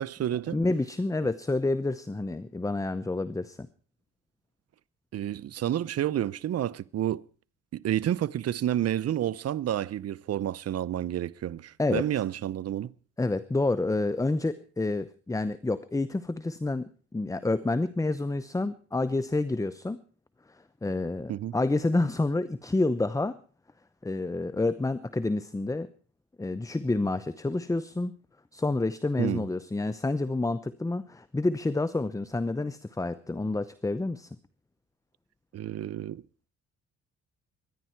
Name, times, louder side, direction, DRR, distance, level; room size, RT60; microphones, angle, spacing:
voice 1, 0.0-0.6 5.1-7.2 7.7-12.9 21.3-21.6 29.2-29.5 35.5-36.2, right 11 dB, 55° right, 0.7 m, -30 dB
voice 2, 0.5-3.7 11.8-12.1 13.2-20.0 20.5-23.4 24.0-25.9 26.4-28.1 28.5-34.3, left 2 dB, 10° left, 0.8 m, -29 dB
23.5 x 10.5 x 4.5 m
cardioid pair, 90°, 30 cm